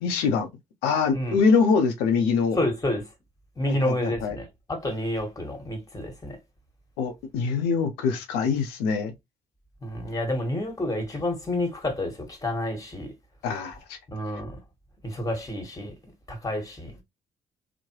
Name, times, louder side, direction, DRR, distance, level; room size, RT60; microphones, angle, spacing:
voice 1, 0.0-0.5 0.8-2.6 3.7-4.4 7.0-9.1 13.4-14.0, left 5 dB, 75° left, 0.7 m, -24 dB
voice 2, 2.5-3.0 3.6-6.4 9.8-13.1 14.1-14.6 15.0-15.9 16.3-16.9, left 1 dB, 20° left, 1.5 m, -29 dB
3.0 x 2.1 x 3.0 m
hypercardioid pair, 45°, 17 cm